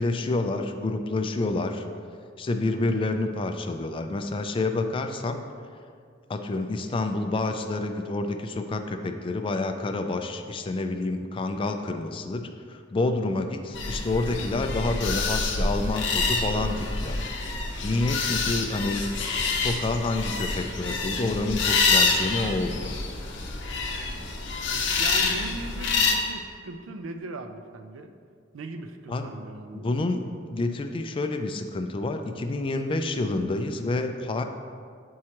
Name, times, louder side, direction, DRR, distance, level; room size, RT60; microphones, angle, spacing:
voice 1, 0.0-1.8 2.4-5.4 6.3-17.2 17.8-19.1 19.5-22.9 29.1-29.2 29.7-30.2 30.5-34.4, left 2 dB, 25° left, 6 dB, 0.3 m, -28 dB
sound 1, 13.7-26.1, left 4 dB, 65° left, 0.7 m, -27 dB
voice 2, 24.7-28.1 28.5-29.9, right 2 dB, 90° right, 7 dB, 0.4 m, -39 dB
7.5 x 4.6 x 2.9 m, 2.2 s
head